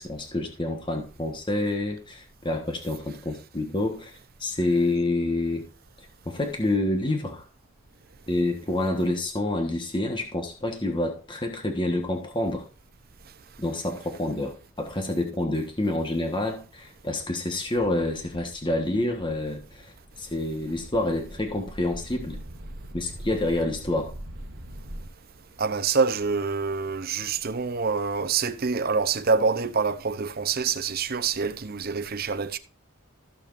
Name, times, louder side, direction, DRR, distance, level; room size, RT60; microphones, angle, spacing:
voice 1, 0.0-5.6 6.2-7.4 8.3-12.7 13.6-22.4 22.9-24.1, left 2 dB, 25° left, 1.3 m, -28 dB
sound 1, 18.2-25.1, equal, 70° right, 1.5 m, -42 dB
voice 2, 25.6-32.6, right 5 dB, 45° right, 0.7 m, -26 dB
15.0 x 6.8 x 2.6 m
head